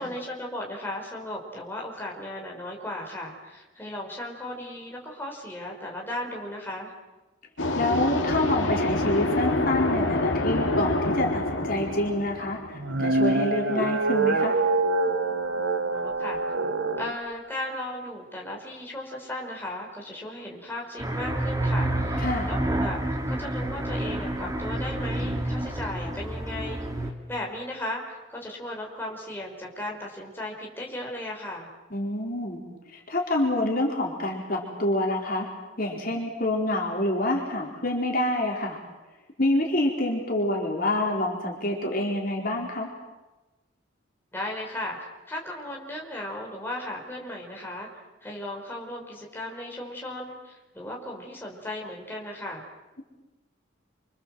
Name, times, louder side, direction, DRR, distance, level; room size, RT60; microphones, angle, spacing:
voice 1, 0.0-6.9 15.9-16.4 17.0-23.0 23.3-31.7 44.3-47.9 48.2-52.6, left 1 dB, 10° left, -1 dB, 5.4 m, -36 dB
sound 1, 7.6-13.3, left 1 dB, 80° left, 2.6 m, -27 dB
voice 2, 7.7-14.6 22.2-22.5 31.9-32.6 32.9-35.5 35.8-38.8 39.4-42.9, left 1 dB, 45° left, -1 dB, 4.5 m, -27 dB
sound 2, 12.7-17.1, right 3 dB, 65° right, 1.3 m, -25 dB
sound 3, 21.0-27.1, right 1 dB, 20° right, 2.8 m, -29 dB
28.5 x 26.0 x 7.8 m, 1.1 s
head